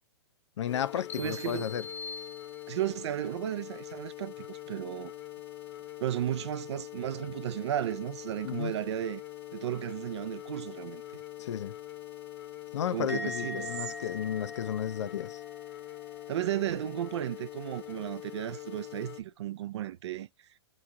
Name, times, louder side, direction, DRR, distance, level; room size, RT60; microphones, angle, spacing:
voice 1, 0.6-1.9 8.4-8.7 11.4-11.7 12.7-15.4, left 10 dB, 80° left, 0.4 m, -33 dB
sound 1, 0.7-19.2, left 15 dB, 55° left, 0.8 m, -44 dB
sound 2, 1.1-3.0, left 4 dB, 15° left, 0.3 m, -43 dB
voice 2, 1.2-1.7 2.7-5.1 6.0-9.2 9.5-11.2 12.9-13.7 16.3-20.3, right 12 dB, 70° right, 0.4 m, -34 dB
Musical instrument, 13.1-16.5 16.7-17.2, left 2 dB, 10° right, 0.9 m, -43 dB
3.6 x 3.0 x 3.6 m
hypercardioid pair, 135°, 15 cm